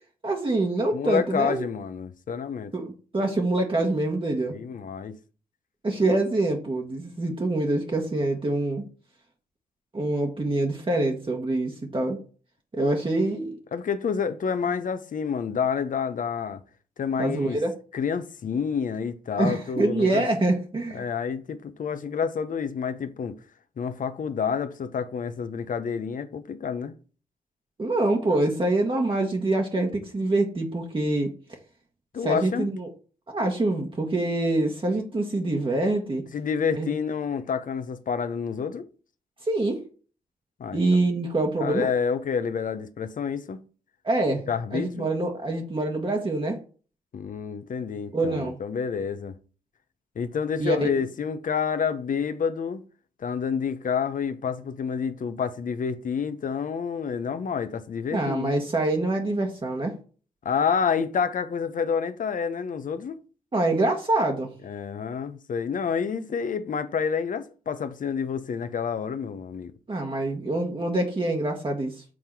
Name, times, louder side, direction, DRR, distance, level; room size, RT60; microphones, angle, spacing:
voice 1, 0.2-1.7 2.7-4.6 5.8-8.8 9.9-12.2 12.7-13.6 17.2-17.7 19.4-21.0 27.8-31.3 32.2-32.9 33.3-36.2 36.7-36.9 39.4-39.8 40.7-41.9 44.0-46.6 48.1-48.6 50.6-50.9 58.1-59.9 63.5-64.5 69.9-72.0, right 2 dB, 35° right, 1.3 m, -25 dB
voice 2, 0.9-2.7 4.5-5.1 13.7-16.6 17.0-17.6 17.9-20.3 20.9-23.4 23.8-26.9 32.1-32.7 36.3-38.9 40.6-40.8 41.6-43.6 44.5-45.1 47.1-49.3 50.2-52.8 53.2-58.6 60.4-63.2 64.6-69.7, left 6 dB, 60° left, 0.8 m, -28 dB
6.2 x 3.7 x 4.6 m
cardioid pair, 55°, 15 cm